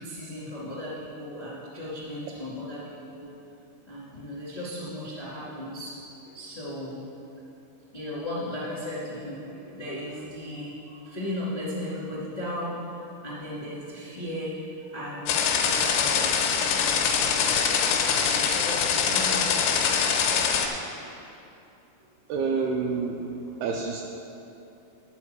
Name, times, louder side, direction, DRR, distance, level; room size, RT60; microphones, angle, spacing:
voice 1, 0.0-3.3 3.9-7.0 7.9-12.8 13.2-17.7 18.2-20.7, left 1 dB, 35° left, -8 dB, 0.6 m, -36 dB
sound 1, 15.3-20.7, left 7 dB, 85° left, 3.1 m, -24 dB
voice 2, 22.3-24.0, right 4 dB, 85° right, 1 dB, 2.3 m, -28 dB
12.0 x 5.0 x 7.6 m, 2.7 s
omnidirectional pair, 5.1 m